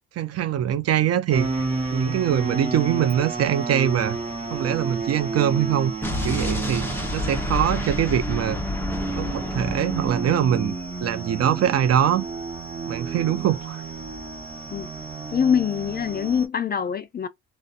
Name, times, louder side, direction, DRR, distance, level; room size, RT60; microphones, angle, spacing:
voice 1, 0.2-1.6 1.9-4.2 4.5-5.9 6.2-8.6 9.2-10.7 11.0-12.3 12.9-13.8, right 10 dB, 55° right, 0.5 m, -23 dB
sound 1, 1.3-16.5, right 3 dB, 20° right, 1.0 m, -31 dB
Explosion, 6.0-10.8, left 1 dB, 5° left, 0.9 m, -30 dB
voice 2, 15.3-17.3, left 7 dB, 30° left, 0.4 m, -24 dB
2.6 x 2.2 x 2.4 m
cardioid pair, 90°, 30 cm